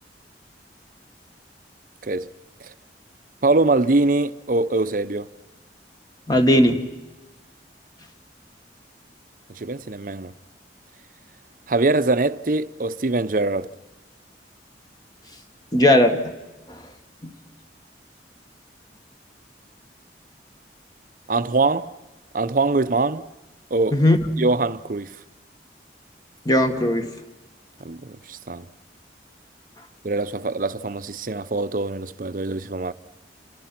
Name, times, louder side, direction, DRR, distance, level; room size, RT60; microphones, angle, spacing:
voice 1, 3.4-5.3 9.5-10.3 11.7-13.7 21.3-21.9 22.3-23.3 23.7-24.0 24.4-25.2 27.8-28.6 30.0-32.9, right 3 dB, 50° right, 0.8 m, -23 dB
voice 2, 6.3-6.8 15.7-16.2 16.7-16.8 17.2-17.3 23.9-24.3 26.5-27.1, left 1 dB, 20° left, 1.8 m, -17 dB
30.0 x 27.5 x 6.0 m
head